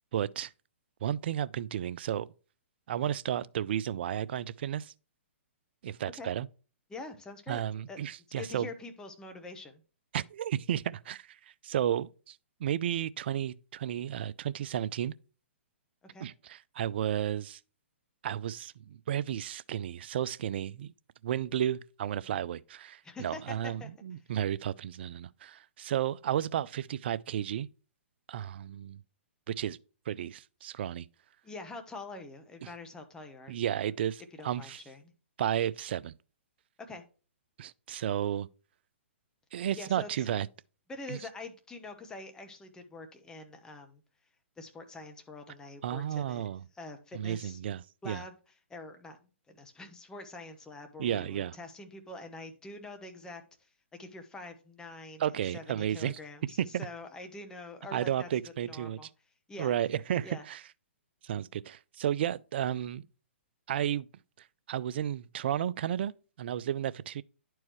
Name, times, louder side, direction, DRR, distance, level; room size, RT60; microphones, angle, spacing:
voice 1, 0.1-0.5 1.0-2.3 2.9-4.9 5.8-6.5 7.5-8.7 10.1-11.4 11.6-15.1 16.2-17.6 18.2-20.9 21.2-27.7 28.3-29.0 29.5-29.8 30.1-31.1 32.6-32.7 33.5-34.8 35.4-36.1 37.6-38.5 39.5-40.5 41.1-41.2 45.8-46.6 47.1-48.2 51.0-51.6 55.2-56.2 56.7-56.9 57.9-59.0 59.6-60.6 61.2-63.0 63.7-64.1 64.7-66.1 66.4-67.2, right 10 dB, 55° right, 0.4 m, -33 dB
voice 2, 6.9-7.6 7.9-8.0 8.4-9.8 16.1-16.3 23.0-23.9 31.4-33.6 34.4-35.1 36.9-37.0 39.8-40.3 40.9-44.0 44.6-46.5 46.7-47.6 48.0-48.3 48.7-49.2 49.5-53.7 54.0-58.3 58.7-59.1 59.5-59.7 60.2-60.4, left 2 dB, 10° left, 1.2 m, -45 dB
10.5 x 4.6 x 3.1 m
hypercardioid pair, 130°, 7 cm